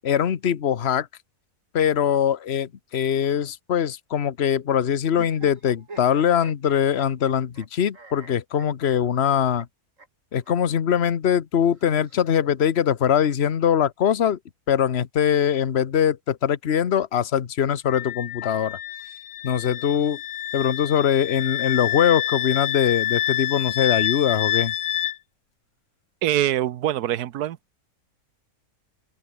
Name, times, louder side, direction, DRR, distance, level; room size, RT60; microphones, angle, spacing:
voice 1, 0.0-1.1 1.7-9.7 10.3-14.4 14.7-18.8 19.4-20.2 20.5-24.7, left 8 dB, 45° left, 1.2 m, -22 dB
sound 1, 5.1-7.7 7.9-9.3 9.6-9.7 10.0-10.1 10.4-10.6 11.6-12.6, right 3 dB, 55° right, 4.0 m, -45 dB
Wind instrument woodwind instrument, 17.9-25.2, left 12 dB, 70° left, 1.2 m, -28 dB
voice 2, 26.2-27.6, right 12 dB, 80° right, 1.3 m, -24 dB
open air
omnidirectional pair, 1.6 m